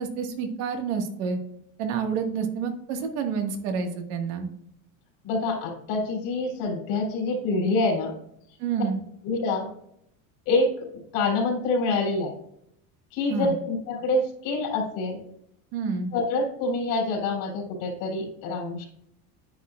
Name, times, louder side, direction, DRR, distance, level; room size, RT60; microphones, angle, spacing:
voice 1, 0.0-1.4 1.8-4.5 8.6-9.0 13.3-13.5 15.7-16.1, right 6 dB, 80° right, 4 dB, 1.9 m, -28 dB
voice 2, 5.2-8.1 9.2-9.7 10.4-12.3 13.1-15.2 16.1-18.9, left 3 dB, 80° left, 1 dB, 3.5 m, -26 dB
9.8 x 9.6 x 2.5 m, 0.74 s
cardioid pair, 155°, 39 cm